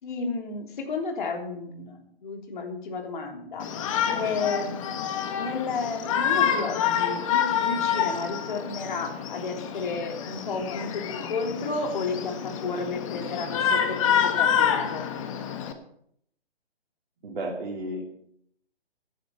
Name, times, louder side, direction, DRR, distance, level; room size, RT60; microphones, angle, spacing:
voice 1, 0.0-3.7 4.1-4.9 5.3-15.1, left 4 dB, 50° left, 2 dB, 3.3 m, -32 dB
Shout, 3.6-15.7, left 8 dB, 30° left, 1.4 m, -27 dB
voice 2, 17.2-18.1, right 1 dB, 55° right, -2 dB, 2.9 m, -34 dB
17.0 x 10.5 x 4.4 m, 0.70 s
figure-of-eight pair, 140°, 32 cm